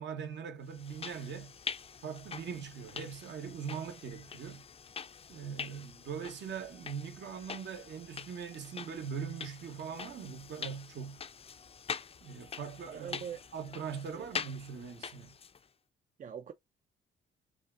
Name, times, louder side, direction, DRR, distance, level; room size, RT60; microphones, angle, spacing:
voice 1, 0.0-1.6 2.0-4.6 5.3-11.2 12.2-13.2 13.5-15.4, right 7 dB, 65° right, 1.2 m, -41 dB
sound 1, 0.7-15.7, left 6 dB, 30° left, 0.4 m, -45 dB
voice 2, 12.9-13.4 14.1-14.3 16.2-16.5, right 8 dB, 40° right, 0.5 m, -42 dB
5.5 x 2.5 x 2.6 m
cardioid pair, 90°, 20 cm